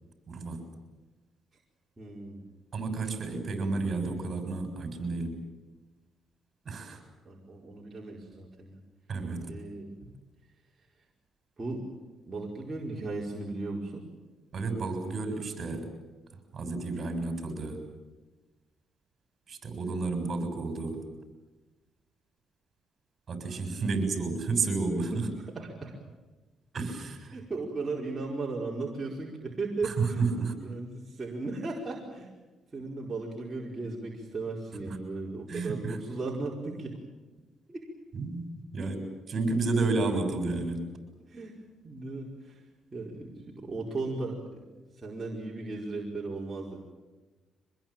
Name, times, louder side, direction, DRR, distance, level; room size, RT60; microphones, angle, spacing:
voice 1, 0.3-0.6 2.7-5.4 6.7-7.0 9.1-9.5 14.5-15.9 16.5-17.8 19.5-21.0 23.3-25.1 26.7-27.3 29.8-30.5 35.5-36.0 38.1-38.5 38.7-40.9, right 3 dB, 45° right, 6 dB, 7.2 m, -31 dB
voice 2, 2.0-2.5 7.2-8.8 9.4-10.0 10.4-11.1 11.6-11.8 12.2-14.0 23.9-24.2 25.1-26.0 27.3-30.3 30.6-32.3 32.7-37.0 37.7-37.9 41.2-44.6 44.9-46.8, right 3 dB, 25° right, -3 dB, 5.0 m, -37 dB
25.0 x 21.5 x 9.1 m, 1.2 s
cardioid pair, 90°, 0 cm